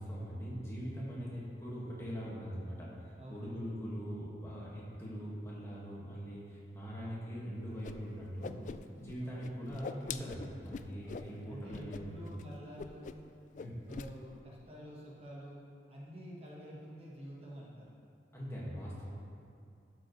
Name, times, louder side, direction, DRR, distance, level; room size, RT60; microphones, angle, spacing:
voice 1, 0.0-8.6 9.0-12.3 13.6-13.8 18.3-19.1, equal, 15° left, -7 dB, 1.8 m, -42 dB
voice 2, 3.2-3.6 9.2-9.3 11.0-13.1 13.9-15.6 15.9-17.9, equal, 35° right, -5 dB, 1.3 m, -49 dB
Whoosh swoosh swish, 7.8-7.9 8.2-9.1 9.4-11.3 11.7-12.0 12.3-12.4 12.8-13.3 13.5-14.1, left 5 dB, 45° left, 0.3 m, -43 dB
12.0 x 7.5 x 3.2 m, 2.4 s
head